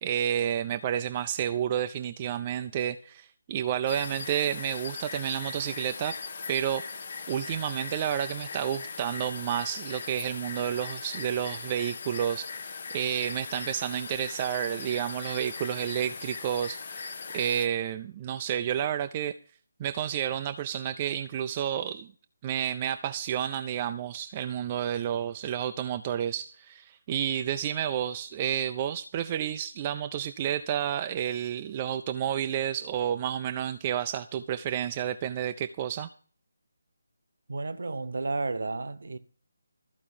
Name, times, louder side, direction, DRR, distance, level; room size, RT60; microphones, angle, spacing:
voice 1, 0.0-6.2 6.5-7.0 7.3-19.3 19.8-22.1 22.4-36.1, right 10 dB, 20° right, 0.5 m, -30 dB
sound 1, 3.9-17.7, left 5 dB, 40° left, 0.8 m, -39 dB
voice 2, 37.5-39.2, right 3 dB, 55° right, 1.0 m, -32 dB
14.0 x 4.7 x 8.6 m
figure-of-eight pair, 150°, 0 cm